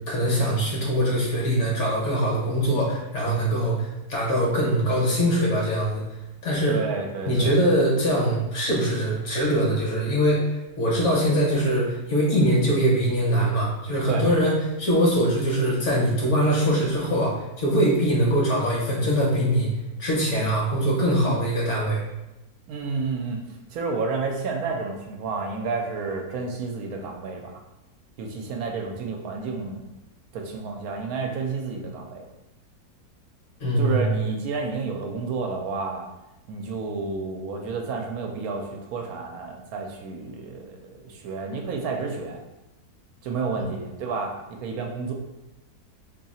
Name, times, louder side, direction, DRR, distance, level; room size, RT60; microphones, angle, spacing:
voice 1, 0.1-6.0 6.4-6.8 7.3-14.5 14.8-19.7 20.0-22.0 33.6-34.1, equal, 55° left, -4 dB, 1.1 m, -22 dB
voice 2, 6.7-7.6 14.1-14.2 21.2-21.4 22.7-23.4 23.7-27.6 28.2-29.8 30.3-32.3 33.8-36.1 36.5-42.4 43.2-45.1, right 4 dB, 75° right, 2 dB, 1.0 m, -30 dB
2.7 x 2.7 x 4.1 m, 0.96 s
omnidirectional pair, 1.7 m